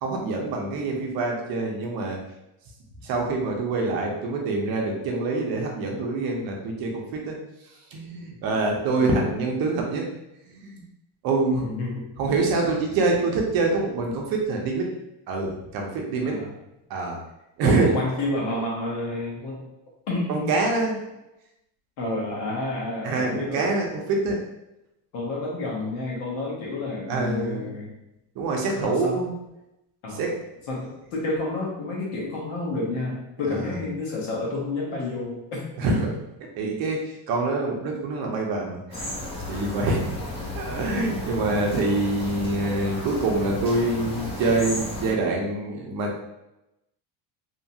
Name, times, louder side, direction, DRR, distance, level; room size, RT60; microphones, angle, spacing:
voice 1, 0.0-2.2 3.0-7.4 7.9-10.1 10.5-10.8 11.2-11.6 12.2-14.9 15.3-16.4 16.9-17.2 17.6-17.9 20.3-21.0 23.0-24.4 27.1-27.7 28.4-29.3 30.2-30.3 33.5-33.6 35.8-36.1 36.6-39.1 39.5-40.0 40.5-46.2, right 3 dB, 50° right, 0 dB, 0.6 m, -25 dB
voice 2, 8.9-9.2 11.5-12.2 16.2-16.5 17.6-19.7 20.1-20.5 22.0-23.7 25.1-27.9 28.8-29.2 30.0-30.3 30.7-35.6 40.4-40.6, left 2 dB, 65° left, -3 dB, 1.2 m, -30 dB
sound 1, 38.9-45.1, left 1 dB, 15° left, 0.4 m, -34 dB
2.8 x 2.4 x 2.7 m, 0.91 s
cardioid pair, 155°, 48 cm